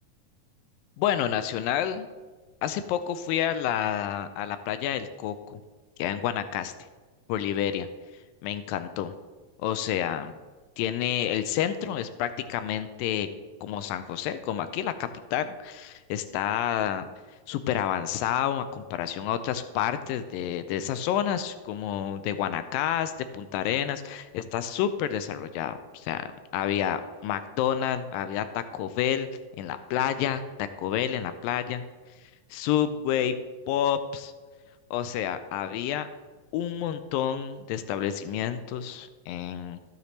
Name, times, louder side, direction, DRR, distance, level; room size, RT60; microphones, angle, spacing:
voice 1, 1.0-2.1 2.6-5.6 6.0-6.7 7.3-7.9 8.4-9.1 9.6-10.4 10.8-13.3 13.6-17.1 17.5-26.2 26.5-29.3 29.6-31.8 32.5-33.4 33.7-34.3 34.9-36.1 36.5-39.8, left 10 dB, 90° left, 11 dB, 2.3 m, -29 dB
15.0 x 6.6 x 3.2 m, 1.3 s
omnidirectional pair, 4.0 m